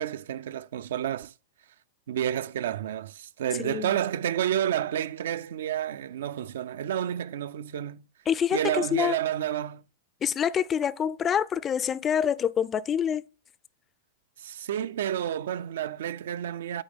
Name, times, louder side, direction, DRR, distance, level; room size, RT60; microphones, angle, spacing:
voice 1, 0.0-1.3 2.1-8.1 8.5-9.8 14.4-16.8, right 10 dB, 75° right, 0.4 m, -30 dB
voice 2, 3.6-3.9 8.3-9.2 10.2-13.2, left 8 dB, 20° left, 0.3 m, -26 dB
8.8 x 3.8 x 3.5 m
hypercardioid pair, 135°, 0 cm